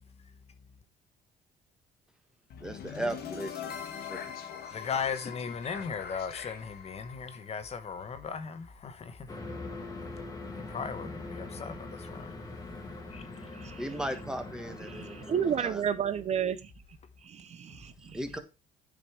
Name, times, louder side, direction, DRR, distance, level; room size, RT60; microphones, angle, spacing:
sound 1, 2.5-8.6, left 8 dB, 65° left, 1.6 m, -42 dB
voice 1, 2.6-3.8 4.1-4.2 4.7-4.8 13.8-15.9 18.1-18.4, right 1 dB, 5° right, 1.5 m, -37 dB
voice 2, 4.7-9.6 10.5-12.3 13.1-13.5, left 6 dB, 40° left, 1.1 m, -37 dB
sound 2, 9.3-15.6, left 2 dB, 20° left, 1.7 m, -42 dB
voice 3, 14.9-16.7 17.2-18.2, right 8 dB, 40° right, 0.6 m, -32 dB
9.1 x 5.2 x 4.7 m
cardioid pair, 110°, 17 cm